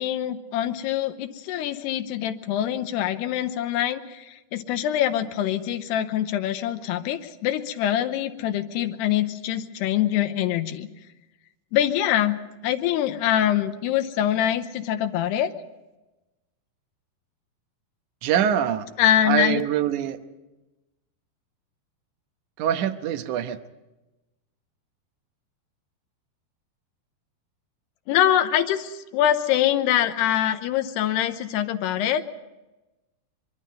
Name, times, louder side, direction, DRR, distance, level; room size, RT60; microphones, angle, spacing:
voice 1, 0.0-10.9 11.7-12.4 12.6-15.5 19.0-19.6 28.1-32.2, left 11 dB, 85° left, 8 dB, 3.0 m, -24 dB
voice 2, 18.2-18.9 19.3-20.2 22.6-23.6, right 10 dB, 65° right, 6 dB, 2.0 m, -24 dB
24.0 x 23.0 x 5.5 m, 1.0 s
omnidirectional pair, 4.7 m